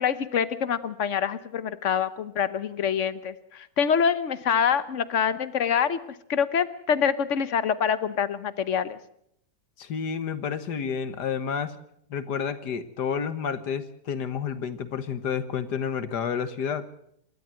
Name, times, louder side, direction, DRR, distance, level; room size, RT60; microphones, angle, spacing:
voice 1, 0.0-6.0 6.3-9.0, left 7 dB, 50° left, 14 dB, 1.2 m, -25 dB
voice 2, 9.8-11.8 12.1-16.8, left 7 dB, 80° left, 12 dB, 1.9 m, -30 dB
27.0 x 12.5 x 7.7 m, 0.72 s
omnidirectional pair, 1.8 m